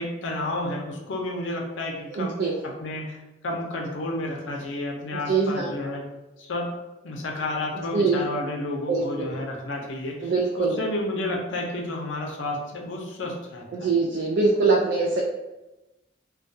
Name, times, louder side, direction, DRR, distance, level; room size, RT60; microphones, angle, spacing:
voice 1, 0.0-2.3 2.6-3.2 3.4-6.0 6.4-6.7 7.0-10.3 10.6-13.9, left 2 dB, 90° left, 0 dB, 0.5 m, -31 dB
voice 2, 2.1-2.6 5.1-5.7 7.7-8.2 8.9-9.4 10.2-10.8 13.7-15.2, right 4 dB, 70° right, -1 dB, 0.3 m, -23 dB
2.2 x 2.2 x 2.6 m, 1.0 s
head